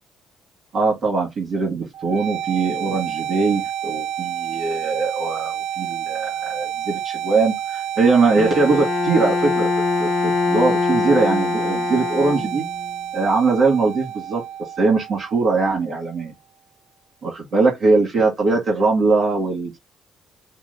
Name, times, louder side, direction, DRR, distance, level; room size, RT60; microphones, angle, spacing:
voice 1, 0.7-9.7 10.0-12.6 13.1-14.4 14.8-16.3 17.2-19.8, right 3 dB, 50° right, 2.2 m, -21 dB
sound 1, 1.9-15.9, right 10 dB, 75° right, 0.6 m, -29 dB
Bowed string instrument, 8.4-12.9, left 5 dB, 45° left, 0.3 m, -23 dB
6.8 x 2.3 x 2.8 m
supercardioid pair, 75°, 0 cm